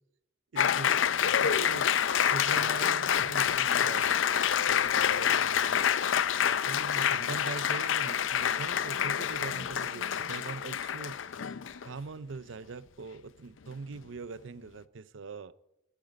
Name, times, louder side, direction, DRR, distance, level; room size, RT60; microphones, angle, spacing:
voice 1, 0.5-1.0 1.4-1.9 2.3-4.1 4.6-11.4 11.8-15.5, right 4 dB, 80° right, 0.6 m, -42 dB
Applause, 0.6-11.9, left 8 dB, 85° left, 0.5 m, -27 dB
19.5 x 9.1 x 5.3 m
head